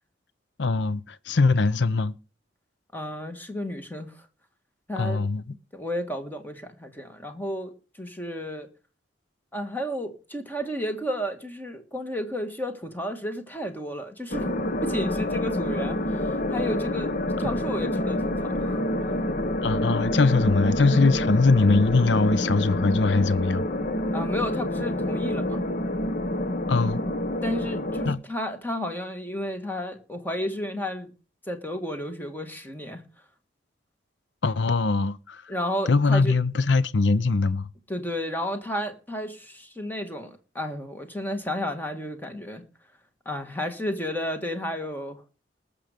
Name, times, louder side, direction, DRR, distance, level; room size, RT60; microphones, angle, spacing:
voice 1, 0.6-2.2 5.0-5.4 19.6-23.7 26.7-27.0 28.1-28.2 34.4-35.4 35.9-37.7, left 3 dB, 70° left, 0.6 m, -22 dB
voice 2, 2.9-4.3 4.9-5.2 5.7-7.7 8.0-8.7 9.5-14.5 14.8-17.1 17.4-19.2 24.1-25.6 27.4-31.1 31.5-33.0 35.5-36.4 37.9-42.6 43.2-45.2, equal, 10° left, 1.7 m, -32 dB
sound 1, 14.3-28.1, left 1 dB, 45° left, 1.0 m, -27 dB
20.0 x 6.8 x 5.1 m
head